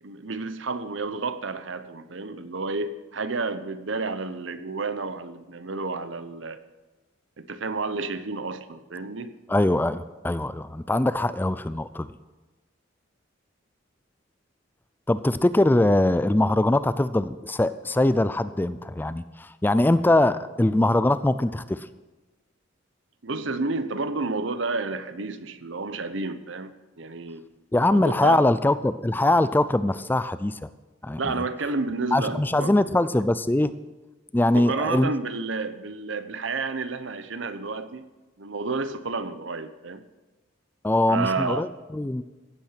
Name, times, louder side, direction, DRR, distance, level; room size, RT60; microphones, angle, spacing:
voice 1, 0.0-6.6 7.4-9.3 23.2-27.4 27.9-28.4 31.2-32.7 34.5-38.0 38.4-40.0 41.1-41.7, right 3 dB, 70° right, 11 dB, 0.9 m, -30 dB
voice 2, 9.5-12.1 15.1-21.9 27.7-30.7 31.0-31.4 32.1-33.7 34.3-35.1 40.8-42.2, left 1 dB, 10° left, 14 dB, 0.3 m, -22 dB
15.5 x 8.6 x 5.8 m, 1.2 s
head